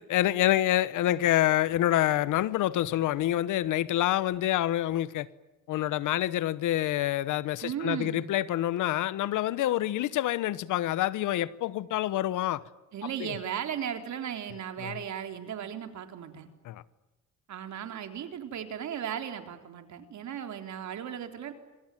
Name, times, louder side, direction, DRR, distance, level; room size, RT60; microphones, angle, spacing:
voice 1, 0.0-5.3 5.7-12.6 13.2-13.3 14.8-14.9 16.6-16.8, left 13 dB, 85° left, 1.1 m, -27 dB
voice 2, 7.6-8.2 12.9-16.5 17.5-21.5, right 9 dB, 70° right, 3.8 m, -36 dB
26.0 x 24.5 x 9.3 m
cardioid pair, 90°, 30 cm